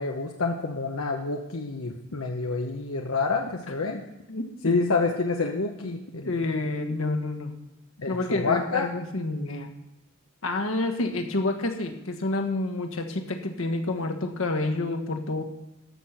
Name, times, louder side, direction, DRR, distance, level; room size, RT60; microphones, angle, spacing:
voice 1, 0.0-4.0 4.6-6.5 8.0-8.9, left 3 dB, 85° left, 2 dB, 0.9 m, -28 dB
voice 2, 4.3-4.8 6.2-7.5 8.1-9.7 10.4-15.4, left 2 dB, 70° left, 4 dB, 1.4 m, -28 dB
14.0 x 6.4 x 5.7 m, 0.95 s
head